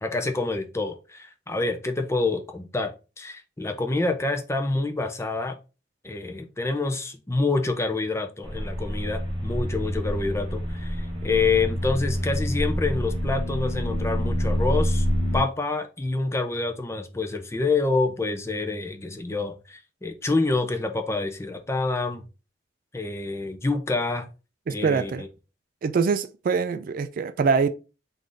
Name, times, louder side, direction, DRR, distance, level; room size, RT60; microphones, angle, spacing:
voice 1, 0.0-5.6 6.0-15.1 15.3-22.2 22.9-24.3 24.7-25.3, left 3 dB, 15° left, 0.4 m, -27 dB
sound 1, 8.4-15.4, equal, 25° right, 0.9 m, -27 dB
voice 2, 24.7-25.2 25.8-27.7, right 5 dB, 50° right, 0.3 m, -24 dB
3.8 x 2.5 x 3.3 m
head